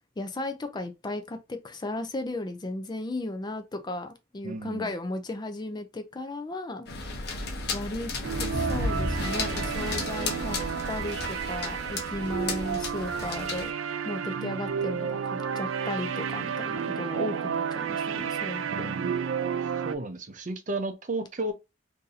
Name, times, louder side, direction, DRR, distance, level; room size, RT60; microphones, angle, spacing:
voice 1, 0.2-6.9 7.7-8.1 8.4-10.6 10.9-13.7 14.0-19.0, left 2 dB, 20° left, 0.4 m, -35 dB
voice 2, 4.4-4.9 18.7-19.2 19.8-21.5, right 2 dB, 40° right, 0.6 m, -33 dB
sound 1, 6.9-13.7, left 2 dB, 55° left, 0.9 m, -33 dB
sound 2, 8.2-19.9, right 7 dB, 85° right, 0.4 m, -31 dB
2.7 x 2.6 x 3.9 m
head